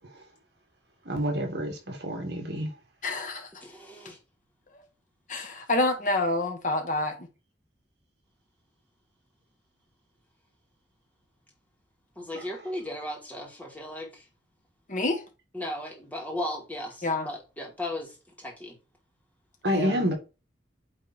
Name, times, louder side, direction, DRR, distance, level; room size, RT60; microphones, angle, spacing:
voice 1, 1.1-2.7 12.3-12.4 19.6-20.1, equal, 65° right, 2.1 m, -28 dB
voice 2, 3.0-3.5 4.7-4.8 5.3-7.3 14.9-15.2 17.0-17.3 19.7-20.0, left 2 dB, 45° left, 1.4 m, -28 dB
voice 3, 3.6-4.2 12.2-14.3 15.5-18.8, left 1 dB, 10° left, 2.3 m, -36 dB
9.1 x 3.7 x 4.4 m
head